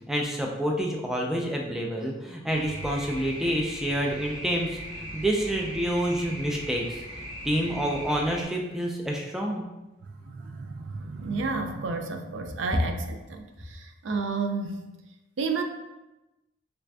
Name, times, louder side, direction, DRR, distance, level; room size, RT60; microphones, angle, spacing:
voice 1, 0.1-7.0 7.4-9.6, equal, ahead, -1 dB, 0.3 m, -28 dB
sound 1, 2.5-8.4, equal, 65° right, 1.0 m, -39 dB
voice 2, 10.3-14.8 15.4-15.6, right 4 dB, 80° right, 5 dB, 0.4 m, -31 dB
3.3 x 2.5 x 3.3 m, 1.0 s
head